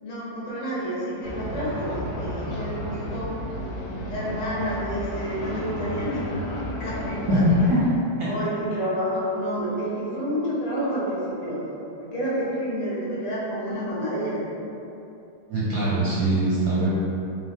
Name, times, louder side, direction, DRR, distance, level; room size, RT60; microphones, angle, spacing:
voice 1, 0.0-3.7 4.1-6.4 6.7-7.5 8.2-11.6 12.0-14.4, equal, 90° left, -7 dB, 2.0 m, -29 dB
sound 1, 1.2-7.7, left 1 dB, 55° left, 1.5 m, -32 dB
voice 2, 7.3-7.9 8.2-8.3 15.5-16.9, right 1 dB, 70° right, -8 dB, 1.0 m, -21 dB
5.2 x 2.0 x 3.5 m, 2.8 s
omnidirectional pair, 2.3 m